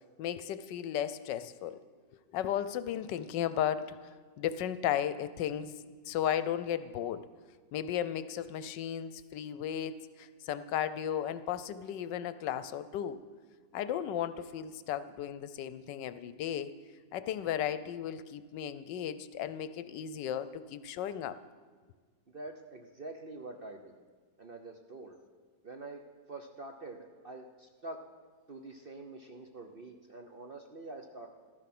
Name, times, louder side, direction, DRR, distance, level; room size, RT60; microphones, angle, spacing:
voice 1, 0.2-1.8 2.3-4.0 4.4-5.7 6.1-7.2 7.7-13.2 13.7-16.7 17.1-21.4, left 10 dB, 80° left, 14 dB, 1.3 m, -35 dB
voice 2, 22.3-24.0 24.4-25.1 25.6-26.0 26.3-28.0 28.5-31.3, right 2 dB, 45° right, 3 dB, 0.7 m, -46 dB
14.0 x 12.5 x 6.0 m, 1.5 s
omnidirectional pair, 1.9 m